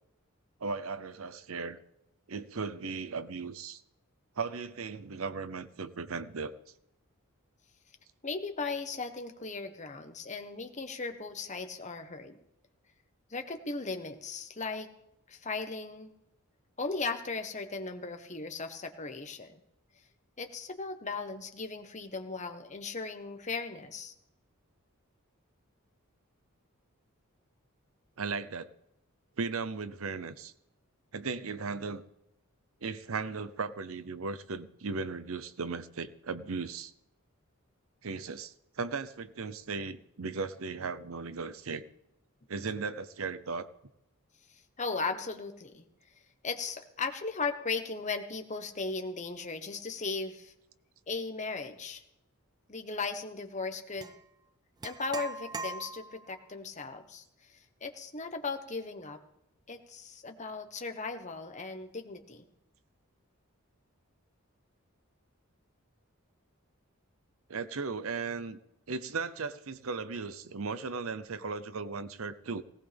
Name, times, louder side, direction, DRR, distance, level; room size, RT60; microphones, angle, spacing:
voice 1, 0.6-1.8 2.3-3.8 4.4-6.5 28.2-28.7 29.4-30.5 31.1-32.0 32.8-36.9 38.0-41.8 42.5-43.7 67.5-68.6 68.9-72.6, right 4 dB, 75° right, 13 dB, 0.8 m, -36 dB
voice 2, 8.2-12.4 13.3-14.9 15.3-16.1 16.8-19.6 20.4-24.1 44.8-45.8 46.4-50.5 51.1-52.0 52.7-54.1 54.8-57.2 57.8-59.2 59.7-62.4, left 4 dB, 35° left, 6 dB, 1.2 m, -37 dB
sound 1, 54.0-54.2 54.8-56.3, right 3 dB, 20° right, 0.4 m, -40 dB
18.0 x 18.0 x 3.5 m, 0.83 s
head